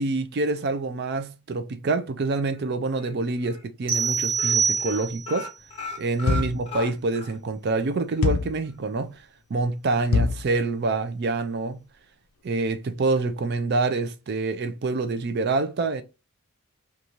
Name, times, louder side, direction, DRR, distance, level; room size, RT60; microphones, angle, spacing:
voice 1, 0.0-5.5 6.0-9.2 9.5-11.8 12.4-16.0, right 3 dB, 45° right, 0.3 m, -26 dB
sound 1, 2.5-3.1 3.4-3.6 3.9-4.1 4.3-7.4 7.7-7.8 8.2-8.3, left 1 dB, 25° left, 0.7 m, -37 dB
sound 2, 3.9-5.4, right 6 dB, 25° right, 0.8 m, -25 dB
sound 3, 6.3-6.7 8.2-8.6 10.1-10.5, left 4 dB, 65° left, 0.4 m, -23 dB
2.6 x 2.3 x 2.9 m
head